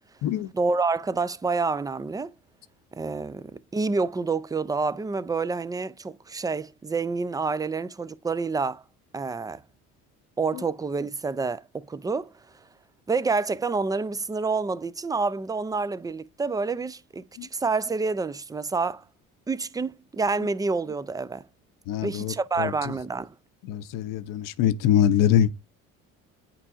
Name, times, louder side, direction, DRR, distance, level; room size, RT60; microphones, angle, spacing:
voice 1, 0.5-2.3 2.9-8.8 9.1-9.6 10.4-12.3 13.1-17.2 17.5-19.0 19.5-21.4 22.0-23.3, right 4 dB, 10° right, 0.4 m, -28 dB
voice 2, 21.9-22.7 23.7-25.5, left 9 dB, 65° left, 0.7 m, -23 dB
8.7 x 4.4 x 2.5 m
hypercardioid pair, 70°, 36 cm